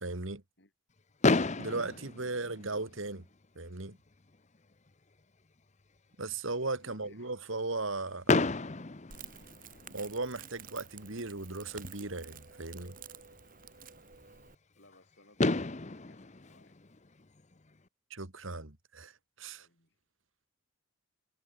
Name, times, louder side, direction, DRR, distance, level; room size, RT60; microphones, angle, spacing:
voice 1, 0.0-0.4 1.6-3.2 3.6-4.0 6.2-8.4 9.9-13.0 18.1-19.1 19.4-19.7, right 3 dB, 65° right, 2.2 m, -37 dB
Fireworks, 1.2-3.2 4.1-4.2 4.3-4.6 4.9-5.0 8.3-10.1 11.8-11.9 14.9-15.0 15.4-17.7, left 3 dB, 30° left, 0.8 m, -31 dB
voice 2, 6.8-7.3 14.8-16.7 19.5-20.0, left 2 dB, 50° left, 6.9 m, -62 dB
Crackle, 9.1-14.5, right 7 dB, 40° right, 3.0 m, -50 dB
head